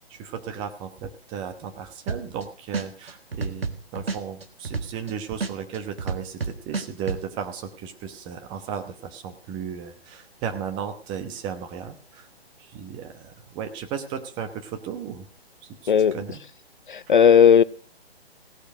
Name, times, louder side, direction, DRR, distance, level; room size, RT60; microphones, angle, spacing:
voice 1, 0.1-12.3 12.6-15.3 15.8-16.4, right 7 dB, 15° right, 1.1 m, -35 dB
sound 1, 2.1-2.4 2.7-5.1 5.4-7.2, right 4 dB, 65° right, 1.6 m, -29 dB
voice 2, 16.9-17.6, left 7 dB, 50° left, 0.5 m, -15 dB
17.0 x 8.3 x 6.4 m
figure-of-eight pair, 130°, 31 cm